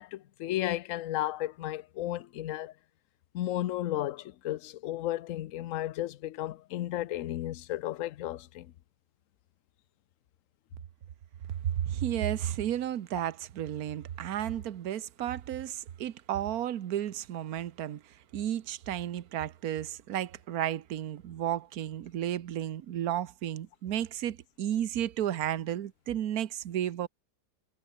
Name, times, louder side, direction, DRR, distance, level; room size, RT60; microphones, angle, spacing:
voice 1, 0.0-2.7 3.3-8.7, left 14 dB, 65° left, 0.9 m, -34 dB
voice 2, 11.7-18.0 18.3-27.1, right 11 dB, 60° right, 1.4 m, -33 dB
omnidirectional pair, 1.8 m